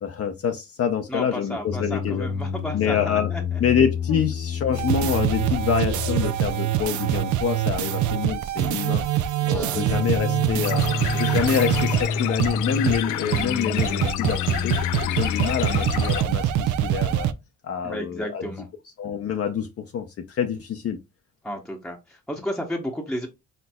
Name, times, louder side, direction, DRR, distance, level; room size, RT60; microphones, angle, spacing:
voice 1, 0.0-2.3 2.7-3.3 3.6-9.0 9.5-10.9 11.2-14.4 14.6-14.8 15.1-17.3 17.6-18.5 19.0-21.0, left 7 dB, 50° left, 0.6 m, -26 dB
voice 2, 1.1-3.6 4.1-4.2 9.4-9.8 17.8-18.7 21.4-23.3, equal, ahead, 0.8 m, -33 dB
sound 1, 1.7-16.2, left 5 dB, 65° left, 1.2 m, -30 dB
sound 2, 4.7-12.1 12.4-12.5 12.9-13.0 13.3-13.4 13.8-17.3, right 11 dB, 75° right, 0.5 m, -24 dB
sound 3, 10.6-16.2, left 12 dB, 90° left, 0.5 m, -30 dB
4.4 x 3.9 x 2.2 m
cardioid pair, 90°, 30 cm